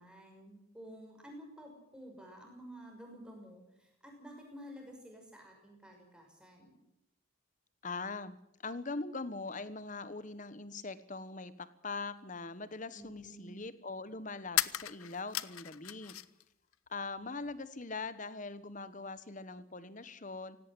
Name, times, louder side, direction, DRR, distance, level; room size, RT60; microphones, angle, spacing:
voice 1, 0.0-6.8 12.9-13.6, equal, 5° right, 1 dB, 6.0 m, -51 dB
voice 2, 7.8-8.4 8.6-16.2 16.9-20.6, left 3 dB, 35° left, 14 dB, 1.2 m, -42 dB
sound 1, 12.2-12.3 14.5-16.4 16.7-17.6, left 13 dB, 85° left, 0.8 m, -36 dB
17.5 x 17.0 x 10.0 m, 0.87 s
head